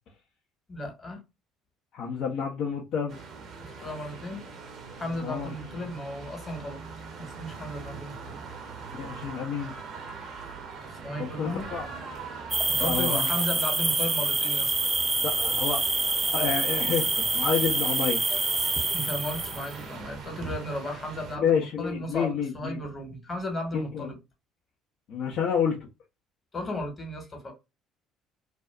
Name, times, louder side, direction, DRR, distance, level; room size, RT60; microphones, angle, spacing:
voice 1, 0.7-1.2 3.6-4.4 5.0-6.8 7.2-8.4 11.0-11.7 12.7-14.7 18.9-24.2 26.5-27.5, left 1 dB, 30° left, 1.2 m, -35 dB
voice 2, 1.9-3.2 5.2-5.5 8.9-9.7 11.2-11.9 12.8-13.3 15.2-15.8 16.3-18.2 21.4-22.8 23.7-24.1 25.1-25.9, left 7 dB, 60° left, 0.7 m, -29 dB
sound 1, 3.1-21.4, right 5 dB, 50° right, 0.7 m, -42 dB
sound 2, 12.5-19.8, right 3 dB, 20° right, 0.3 m, -26 dB
2.6 x 2.3 x 2.3 m
hypercardioid pair, 60°, 0 cm